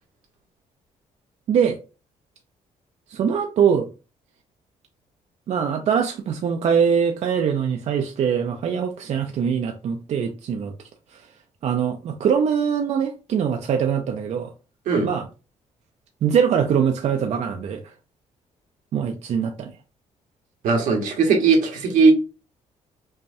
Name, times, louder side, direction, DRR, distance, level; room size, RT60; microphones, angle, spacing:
voice 1, 1.5-1.8 3.1-3.9 5.5-10.7 11.1-11.2 11.6-14.5 15.0-15.3 16.2-17.8 18.9-19.7, right 7 dB, 55° right, 0.5 m, -22 dB
voice 2, 20.6-22.1, right 4 dB, 85° right, 1.2 m, -18 dB
5.5 x 2.2 x 2.7 m
cardioid pair, 120°, 13 cm